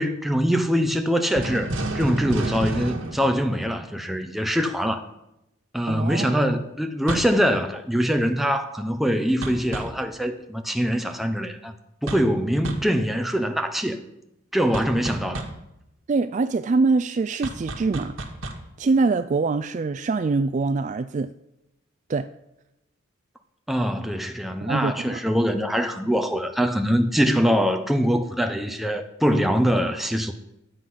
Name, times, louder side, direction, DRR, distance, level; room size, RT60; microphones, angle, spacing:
voice 1, 0.0-5.1 5.7-11.7 12.0-14.0 14.5-15.4 23.7-30.3, equal, ahead, 0.7 m, -23 dB
sound 1, 1.4-4.2 7.1-7.4 9.4-10.0 12.1-12.4 12.6-12.9 14.7-15.6 17.4-18.7, right 2 dB, 85° right, 1.7 m, -31 dB
voice 2, 5.9-6.3 16.1-18.2 18.8-21.3 22.1-22.3 24.6-25.2, right 3 dB, 35° right, 0.3 m, -24 dB
12.5 x 8.0 x 5.7 m
head